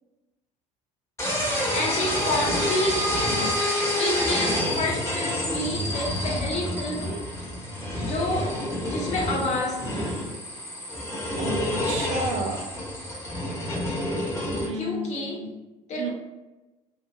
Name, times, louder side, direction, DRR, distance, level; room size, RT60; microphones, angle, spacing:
sound 1, 1.2-14.7, left 1 dB, 15° left, 1.2 m, -28 dB
voice 1, 1.7-3.0 4.0-7.2 8.0-8.6 8.8-10.1 14.7-15.4 15.9-16.1, left 1 dB, 40° left, -2 dB, 0.8 m, -29 dB
voice 2, 11.4-12.7 14.6-15.6 15.9-16.1, right 1 dB, 35° right, 2 dB, 0.5 m, -32 dB
2.7 x 2.3 x 2.3 m, 1.1 s
figure-of-eight pair, 60°, 19 cm